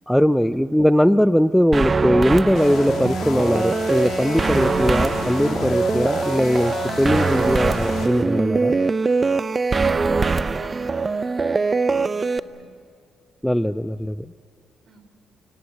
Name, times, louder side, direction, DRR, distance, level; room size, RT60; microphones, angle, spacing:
voice 1, 0.1-8.8 13.4-14.3, equal, ahead, 14 dB, 0.6 m, -20 dB
sound 1, 1.7-12.4, right 4 dB, 30° right, 0.7 m, -22 dB
sound 2, 2.5-8.1, left 5 dB, 70° left, 2.8 m, -31 dB
voice 2, 9.9-12.7 14.9-15.0, right 3 dB, 55° right, 8 dB, 3.8 m, -46 dB
28.5 x 18.5 x 9.1 m, 2.3 s
cardioid pair, 90°, 0 cm